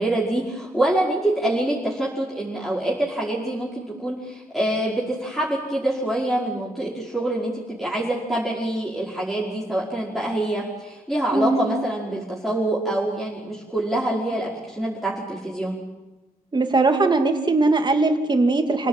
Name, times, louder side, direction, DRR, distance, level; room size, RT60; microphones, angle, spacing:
voice 1, 0.0-7.5 7.8-15.8, right 1 dB, ahead, -6 dB, 5.3 m, -25 dB
voice 2, 11.3-11.7 16.5-18.9, right 3 dB, 30° right, 5 dB, 2.7 m, -20 dB
28.5 x 17.5 x 9.2 m, 1.1 s
wide cardioid pair, 120°, 15 cm